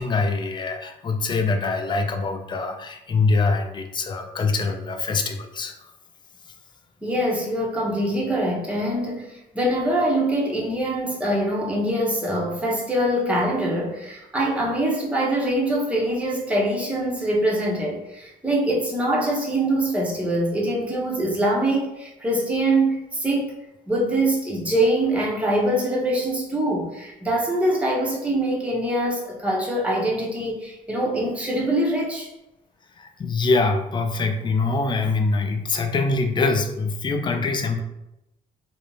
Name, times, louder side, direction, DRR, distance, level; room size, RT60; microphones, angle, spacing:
voice 1, 0.0-5.7 33.0-37.8, left 3 dB, 30° left, 5 dB, 0.4 m, -24 dB
voice 2, 7.0-23.6 23.9-32.3, right 1 dB, 10° right, -3 dB, 0.7 m, -24 dB
2.5 x 2.0 x 3.0 m, 0.88 s
cardioid pair, 100°, 16 cm